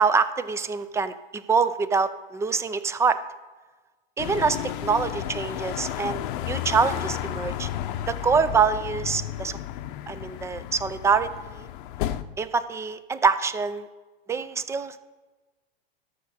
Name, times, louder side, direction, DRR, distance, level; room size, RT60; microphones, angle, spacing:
voice 1, 0.0-3.2 4.2-7.7 8.1-9.6 10.1-11.7 12.4-13.9 14.3-15.0, right 5 dB, 10° right, 13 dB, 0.3 m, -25 dB
sound 1, 4.2-12.2, left 12 dB, 60° left, 0.7 m, -32 dB
13.0 x 6.4 x 4.2 m, 1.3 s
hypercardioid pair, 115°, 30 cm